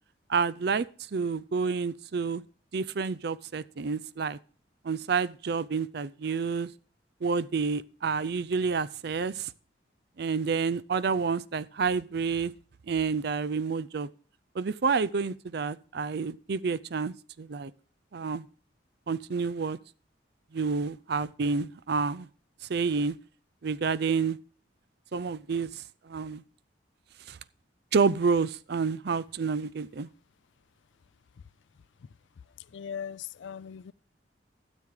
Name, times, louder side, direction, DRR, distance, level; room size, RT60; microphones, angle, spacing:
voice 1, 0.3-2.4 2.7-4.4 4.8-6.7 7.2-9.5 10.2-12.5 12.9-14.1 14.6-17.7 18.1-18.4 19.1-19.8 20.5-22.3 22.7-23.2 23.6-24.4 25.1-26.4 27.3-27.4 27.9-30.1, right 5 dB, 60° right, 0.5 m, -29 dB
voice 2, 32.7-33.9, left 7 dB, 85° left, 0.4 m, -39 dB
13.0 x 7.5 x 4.8 m
head